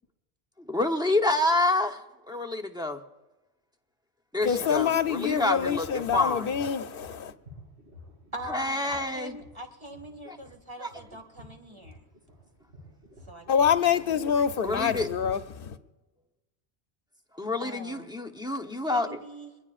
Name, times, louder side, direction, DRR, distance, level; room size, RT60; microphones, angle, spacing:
voice 1, 0.7-3.0 4.3-6.5 8.4-9.4 10.3-10.4 10.8-10.9 14.6-15.1 17.4-19.2, left 2 dB, 5° right, 0.8 m, -28 dB
voice 2, 4.4-7.3 13.5-15.8, left 7 dB, 60° left, 0.9 m, -26 dB
sound 1, 5.5-14.5, equal, 80° right, 5.9 m, -51 dB
voice 3, 8.3-12.1 13.3-14.1 17.6-18.2 18.9-19.6, right 1 dB, 25° right, 2.0 m, -43 dB
22.5 x 21.0 x 2.5 m
omnidirectional pair, 1.1 m